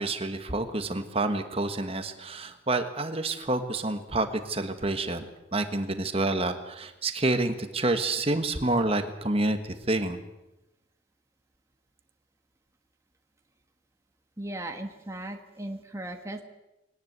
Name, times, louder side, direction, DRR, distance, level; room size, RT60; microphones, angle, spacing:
voice 1, 0.0-10.2, right 2 dB, 30° right, 8 dB, 1.4 m, -28 dB
voice 2, 14.4-16.4, right 1 dB, 15° right, 4 dB, 1.4 m, -37 dB
22.0 x 18.5 x 8.1 m, 0.96 s
head